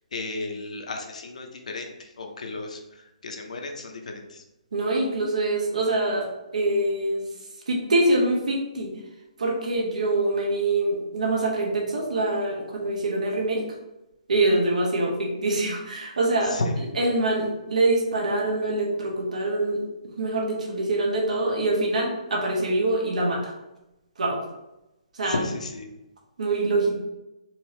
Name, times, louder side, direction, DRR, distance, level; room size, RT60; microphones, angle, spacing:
voice 1, 0.1-2.8 3.2-4.4 16.5-16.7 25.3-25.9, left 3 dB, 70° left, 3 dB, 0.8 m, -33 dB
voice 2, 4.7-7.3 7.7-8.9 9.4-13.6 14.3-19.8 20.2-23.5 24.2-24.4 25.1-25.5 26.4-27.0, right 2 dB, 80° right, 0 dB, 1.2 m, -24 dB
4.5 x 2.7 x 3.3 m, 0.96 s
hypercardioid pair, 180°, 4 cm